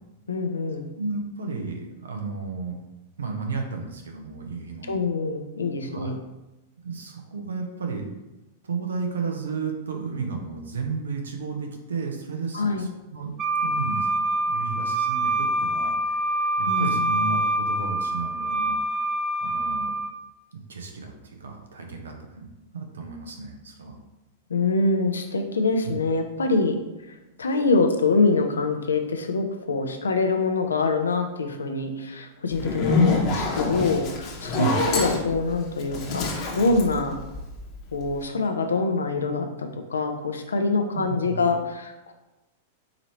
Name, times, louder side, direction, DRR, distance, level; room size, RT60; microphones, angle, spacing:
voice 1, 0.3-0.9 4.9-6.2 12.5-12.9 16.7-17.2 24.5-26.8 27.1-34.7 34.9-37.2 37.9-42.1, left 3 dB, 80° left, 5 dB, 0.6 m, -25 dB
voice 2, 1.0-2.8 3.2-4.9 5.9-6.1 6.8-8.3 8.6-13.3 13.6-14.1 14.5-18.8 19.4-19.9 20.5-22.5 22.7-24.0 34.5-34.9 40.9-41.4, right 4 dB, 80° right, 3 dB, 0.8 m, -33 dB
Wind instrument woodwind instrument, 13.4-20.1, right 1 dB, 25° right, 0.4 m, -25 dB
Zipper (clothing), 32.5-37.8, left 3 dB, 40° left, 1.0 m, -26 dB
4.9 x 2.8 x 3.1 m, 1.0 s
hypercardioid pair, 100°, 0 cm